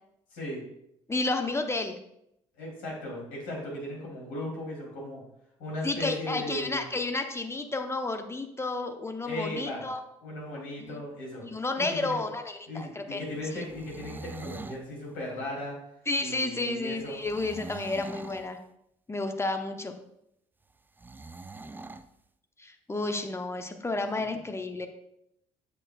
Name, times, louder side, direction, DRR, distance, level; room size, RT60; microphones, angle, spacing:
voice 1, 0.3-0.6 2.6-5.2 5.6-6.8 9.2-9.9 10.2-11.5 11.8-12.2 12.7-15.8 16.2-17.2 24.1-24.3, left 1 dB, 65° left, -2 dB, 2.9 m, -37 dB
voice 2, 1.1-2.0 5.8-10.0 10.9-11.0 11.4-13.2 13.5-13.7 16.1-18.6 19.1-19.9 22.6-24.9, left 2 dB, 15° left, 6 dB, 0.8 m, -31 dB
sound 1, 13.6-14.8 17.2-18.5 21.0-22.1, right 3 dB, 10° right, 0.4 m, -43 dB
8.4 x 6.7 x 2.3 m, 0.78 s
figure-of-eight pair, 45°, 16 cm